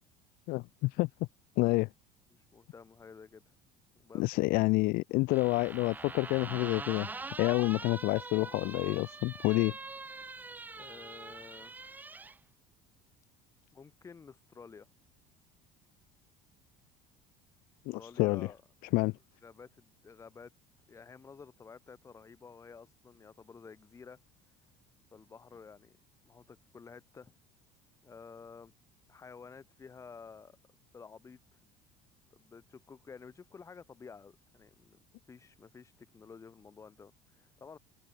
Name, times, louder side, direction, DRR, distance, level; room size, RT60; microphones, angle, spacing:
voice 1, 0.5-1.1 1.6-1.9 4.1-7.1 7.4-9.7 17.9-18.5 18.9-19.1, left 23 dB, 60° left, 0.7 m, -28 dB
voice 2, 2.3-3.5 3.9-4.2 10.8-11.7 13.7-14.9 17.9-18.6 19.4-20.5 20.9-24.2 25.1-26.0 26.2-27.3 28.0-28.7 29.1-30.6 30.9-31.4 32.3-35.0 35.3-37.8, left 5 dB, 15° left, 2.0 m, -52 dB
sound 1, 5.3-12.4, right 3 dB, 10° right, 1.2 m, -43 dB
cardioid pair, 175°, 18 cm